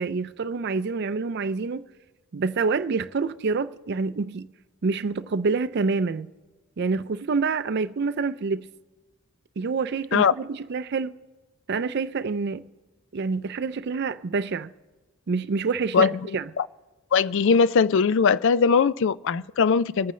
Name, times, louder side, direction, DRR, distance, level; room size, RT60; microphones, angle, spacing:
voice 1, 0.0-1.9 2.3-4.5 4.8-6.3 6.8-8.7 9.6-11.1 11.7-12.7 13.1-14.7 15.3-16.5, right 4 dB, 50° right, 0.4 m, -27 dB
voice 2, 17.1-20.1, left 5 dB, 55° left, 0.3 m, -20 dB
23.0 x 9.2 x 3.2 m
head